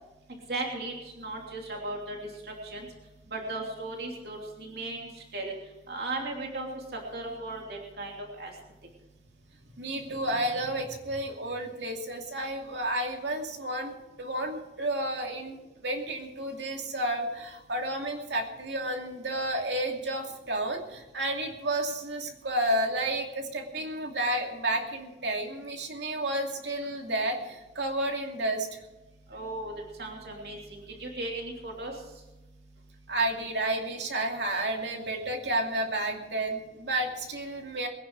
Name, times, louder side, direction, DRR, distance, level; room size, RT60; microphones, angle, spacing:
voice 1, 0.5-2.2 2.4-2.9 3.3-5.5 5.9-6.7 7.1-8.5 29.3-29.7 30.0-31.9, right 2 dB, 65° right, 0 dB, 3.0 m, -36 dB
voice 2, 9.7-13.9 14.2-15.6 15.8-28.7 33.1-37.9, right 1 dB, 80° right, 3 dB, 2.5 m, -31 dB
22.5 x 10.0 x 4.7 m, 1.1 s
head